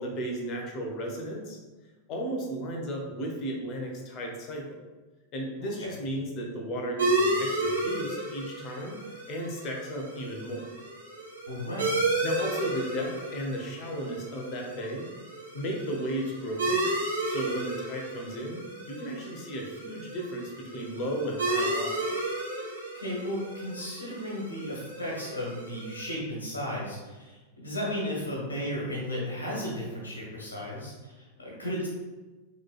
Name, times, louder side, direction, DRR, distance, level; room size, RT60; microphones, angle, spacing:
voice 1, 0.0-1.6 2.1-4.8 5.3-9.0 9.3-10.7 12.2-15.1 15.5-22.1, equal, 40° left, 1 dB, 0.9 m, -34 dB
voice 2, 5.6-5.9 11.5-12.0 22.9-31.9, equal, 75° left, -4 dB, 1.5 m, -34 dB
sound 1, 7.0-26.1, right 2 dB, 70° right, 1.2 m, -33 dB
6.0 x 3.2 x 2.4 m, 1.2 s
figure-of-eight pair, 90°, 0 cm